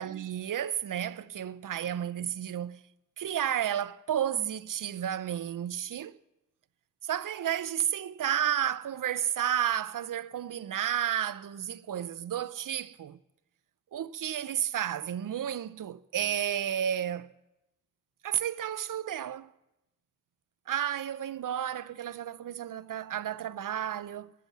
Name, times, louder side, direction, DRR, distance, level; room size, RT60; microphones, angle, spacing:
voice 1, 0.0-2.8 3.2-6.2 7.0-13.2 13.9-17.3 18.2-19.5 20.7-24.3, right 10 dB, 75° right, 0.5 m, -32 dB
11.0 x 10.5 x 7.3 m
wide cardioid pair, 150°, 32 cm